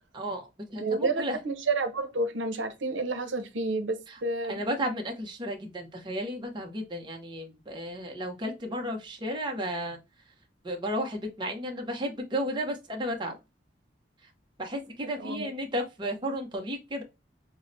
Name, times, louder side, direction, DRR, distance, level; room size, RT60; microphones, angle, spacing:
voice 1, 0.1-1.4 4.1-4.2 4.5-10.0 10.6-13.4 14.6-17.0, equal, 25° right, 0.6 m, -33 dB
voice 2, 0.8-4.6 15.2-15.5, right 3 dB, 85° right, 0.7 m, -30 dB
5.5 x 2.0 x 2.5 m
head